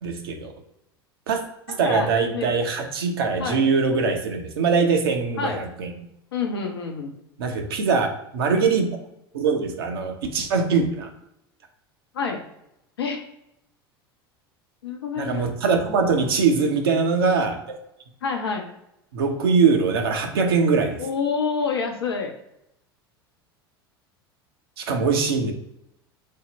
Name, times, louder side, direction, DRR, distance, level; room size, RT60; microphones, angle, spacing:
voice 1, 0.0-0.5 1.3-1.4 1.7-5.9 7.4-8.1 8.3-8.9 9.3-11.1 15.2-17.8 19.1-21.0 24.8-25.5, right 5 dB, 70° right, 3 dB, 0.7 m, -22 dB
voice 2, 1.8-2.5 3.4-3.6 5.4-5.7 6.3-7.1 12.1-12.4 13.0-13.2 14.8-15.5 18.2-18.7 21.0-22.3, left 5 dB, 75° left, 2 dB, 0.7 m, -27 dB
3.6 x 2.1 x 3.9 m, 0.82 s
figure-of-eight pair, 75°, 13 cm